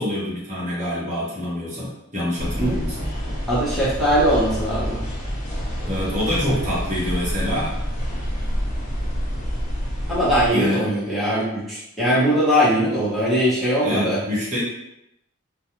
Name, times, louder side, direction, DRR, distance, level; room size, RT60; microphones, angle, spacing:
voice 1, 0.0-3.1 5.8-7.8 10.5-10.9 13.8-14.6, left 1 dB, 35° right, -7 dB, 0.9 m, -26 dB
sound 1, 2.4-10.5, equal, 35° left, 0.7 m, -27 dB
voice 2, 3.5-5.0 10.1-14.2, equal, ahead, -11 dB, 0.8 m, -20 dB
2.4 x 2.2 x 2.9 m, 0.81 s
head